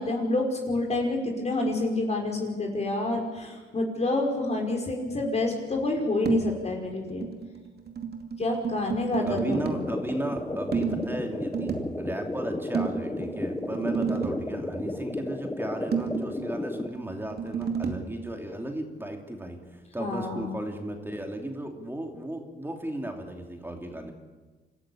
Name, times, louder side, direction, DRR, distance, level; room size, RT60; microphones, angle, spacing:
voice 1, 0.0-7.3 8.4-9.8 10.8-11.0 13.8-13.9 20.0-20.6, left 2 dB, 35° left, 1 dB, 5.1 m, -28 dB
sound 1, 6.3-6.7 7.0-9.9 10.7-12.0 12.7-14.5 15.9-18.1, right 6 dB, 55° right, 2.5 m, -32 dB
voice 2, 9.2-24.1, right 1 dB, 10° right, 3 dB, 3.0 m, -35 dB
sound 2, 9.4-16.9, left 2 dB, 10° left, 1.5 m, -33 dB
26.5 x 14.0 x 8.7 m, 1.3 s
cardioid pair, 90°, 20 cm